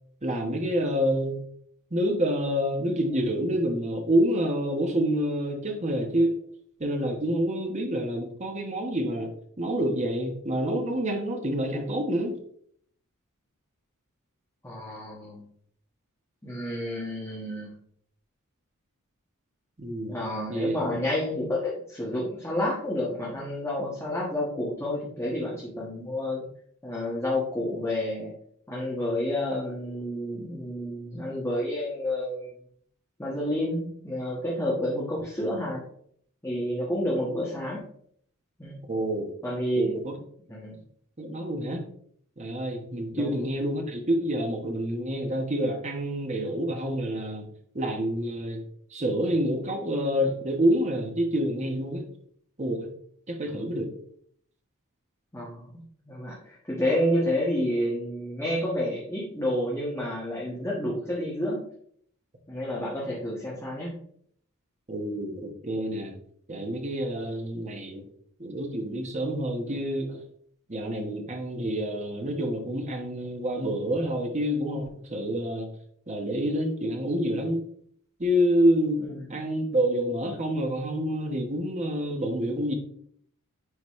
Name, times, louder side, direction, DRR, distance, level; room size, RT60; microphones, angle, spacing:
voice 1, 0.2-1.4 1.9-6.3 6.8-9.3 9.6-12.4 19.8-20.2 20.5-20.8 38.9-39.3 39.8-40.2 41.2-41.8 42.4-47.5 47.7-48.6 48.9-52.0 52.6-52.9 53.3-53.9 64.9-66.1 66.5-68.0 68.4-70.2 70.7-75.7 76.1-77.6 78.2-79.0 79.3-82.7, equal, 30° right, 3 dB, 1.1 m, -27 dB
voice 2, 14.6-15.4 16.4-17.7 20.1-26.5 26.8-28.3 28.7-32.5 33.2-35.8 36.4-37.8 38.6-38.8 39.4-39.9 40.5-40.7 43.1-43.4 53.5-53.6 55.3-55.8 56.1-61.6 62.5-63.9 79.0-79.2, left 1 dB, 15° left, -6 dB, 1.4 m, -30 dB
9.5 x 4.1 x 3.2 m, 0.64 s
head